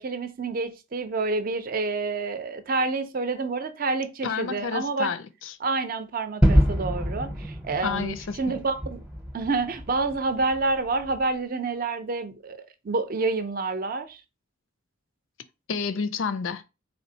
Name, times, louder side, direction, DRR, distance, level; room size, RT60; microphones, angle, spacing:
voice 1, 0.0-5.1 5.6-9.0 9.3-12.6 12.8-14.2, right 3 dB, 45° right, 0.5 m, -28 dB
voice 2, 4.2-5.6 7.8-8.6 15.7-16.6, left 5 dB, 85° left, 0.5 m, -30 dB
Gunshot gunfire / Fireworks / Boom, 6.4-11.2, equal, 5° right, 0.7 m, -26 dB
4.3 x 3.3 x 2.7 m
head